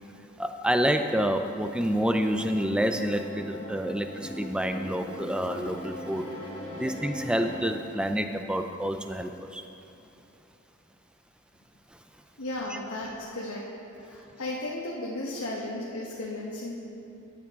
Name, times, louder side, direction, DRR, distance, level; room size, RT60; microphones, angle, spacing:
voice 1, 0.4-6.3 6.7-9.6 12.7-12.8, equal, 5° right, 7 dB, 0.3 m, -28 dB
sound 1, 1.4-7.7, left 1 dB, 30° left, 2.6 m, -40 dB
voice 2, 12.4-13.7 14.0-16.8, left 1 dB, 80° left, -4 dB, 1.1 m, -35 dB
12.5 x 8.6 x 3.6 m, 2.8 s
head